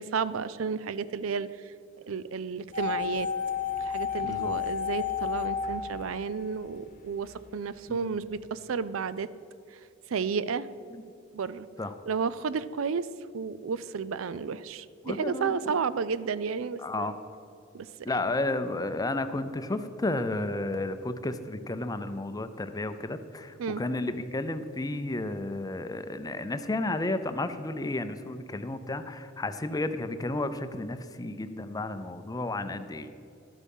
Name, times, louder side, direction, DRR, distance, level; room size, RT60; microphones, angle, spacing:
voice 1, 0.0-1.7 2.1-3.3 3.8-9.3 10.1-10.7 11.3-11.7 12.1-13.1 13.3-17.1 17.7-17.9 23.6-23.8, right 5 dB, 80° right, 16 dB, 0.4 m, -32 dB
sound 1, 2.7-6.8 7.1-7.2, left 8 dB, 40° left, 1.0 m, -31 dB
voice 2, 15.0-15.5 16.8-17.1 18.0-33.2, left 2 dB, 20° left, 10 dB, 0.5 m, -32 dB
12.5 x 8.3 x 5.4 m, 2.6 s
head